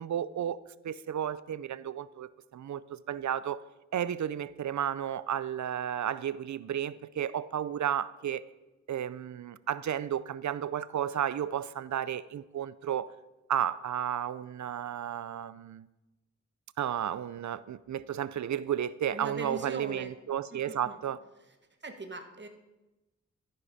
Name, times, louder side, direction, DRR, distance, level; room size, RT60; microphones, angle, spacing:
voice 1, 0.0-3.6 3.9-8.5 8.9-13.1 13.5-15.9 16.8-21.2, right 10 dB, 75° right, 0.5 m, -33 dB
voice 2, 19.1-20.1 20.5-21.0 21.8-22.5, right 3 dB, 40° right, 1.5 m, -40 dB
13.5 x 11.0 x 4.2 m
wide cardioid pair, 80°, 29 cm